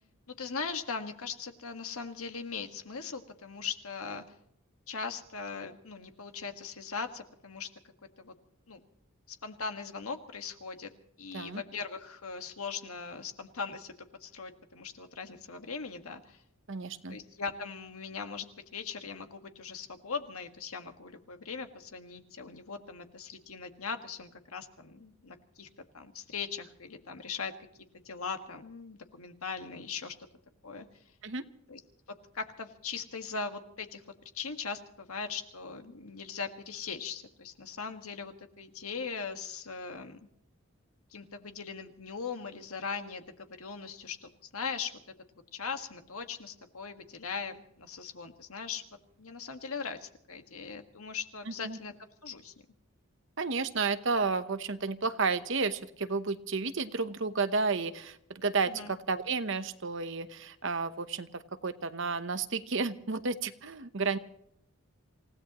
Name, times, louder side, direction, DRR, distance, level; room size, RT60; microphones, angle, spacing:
voice 1, 0.3-4.2 4.9-7.7 8.2-8.3 8.7-8.8 9.3-10.9 11.2-13.9 14.2-16.4 17.1-25.7 25.9-27.5 27.9-30.2 30.6-30.9 31.7-31.8 32.3-34.0 34.3-40.2 41.1-45.0 45.5-48.8 49.2-51.9 52.2-52.5 58.7-58.9, left 5 dB, 80° left, 6 dB, 1.7 m, -40 dB
voice 2, 16.7-17.2 31.2-31.4 51.5-51.8 53.4-64.2, right 4 dB, 55° right, 11 dB, 0.9 m, -32 dB
28.0 x 16.5 x 3.1 m, 0.72 s
head